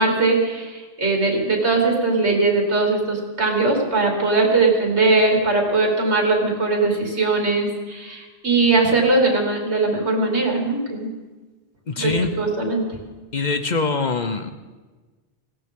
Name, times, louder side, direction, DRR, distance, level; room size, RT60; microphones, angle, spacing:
voice 1, 0.0-11.1 12.0-12.1 12.4-13.0, right 3 dB, 85° right, 0 dB, 3.1 m, -20 dB
voice 2, 11.9-12.4 13.3-14.5, left 4 dB, 45° left, 9 dB, 0.8 m, -23 dB
20.0 x 16.5 x 3.7 m, 1.3 s
omnidirectional pair, 1.1 m